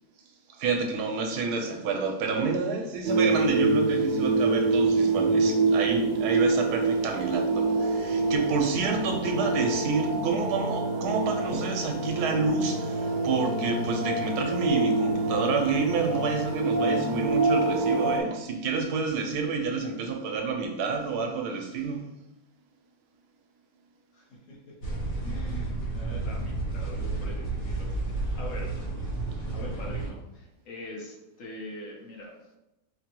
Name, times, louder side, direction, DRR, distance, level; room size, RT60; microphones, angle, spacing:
voice 1, 0.5-22.0, right 4 dB, 85° right, 3 dB, 1.2 m, -29 dB
sound 1, 3.0-18.2, right 3 dB, 60° right, 0.6 m, -26 dB
voice 2, 24.1-27.9 28.4-28.8 29.5-32.3, left 1 dB, 60° left, -1 dB, 1.1 m, -43 dB
sound 2, 24.8-30.1, right 2 dB, 40° left, 0.7 m, -31 dB
5.1 x 2.2 x 2.9 m, 0.93 s
omnidirectional pair, 1.6 m